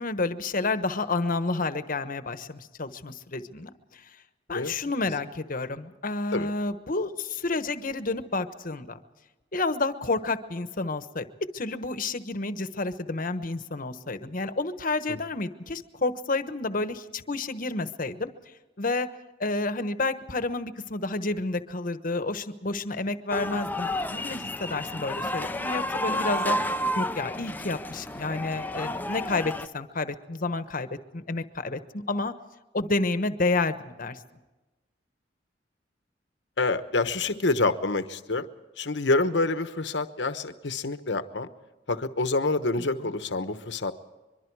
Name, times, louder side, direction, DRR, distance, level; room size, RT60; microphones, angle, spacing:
voice 1, 0.0-4.0 4.5-9.0 9.5-11.3 11.5-18.3 18.8-19.1 19.4-30.9 31.1-32.3 32.7-34.2, left 3 dB, 50° left, 11 dB, 1.2 m, -30 dB
sound 1, 23.3-29.7, left 1 dB, 10° left, 0.7 m, -31 dB
voice 2, 36.6-38.5 38.8-41.5 41.9-43.9, left 3 dB, 75° left, 11 dB, 1.1 m, -27 dB
24.0 x 23.0 x 4.8 m, 1.1 s
head